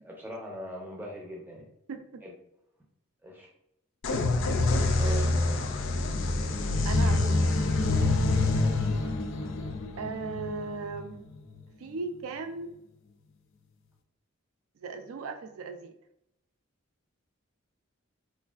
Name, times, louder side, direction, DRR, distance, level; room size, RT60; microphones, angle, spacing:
voice 1, 0.0-1.6 2.2-2.3 3.2-3.5 5.0-5.8 6.4-6.5 8.6-8.9, equal, 10° right, -2 dB, 0.6 m, -41 dB
voice 2, 1.9-2.2 5.0-5.2 6.9-7.4 10.0-11.2 11.8-12.7 14.8-15.9, right 4 dB, 75° right, 7 dB, 0.4 m, -37 dB
sound 1, 4.0-11.6, left 2 dB, 65° left, 0.3 m, -26 dB
3.1 x 2.5 x 2.4 m, 0.80 s
head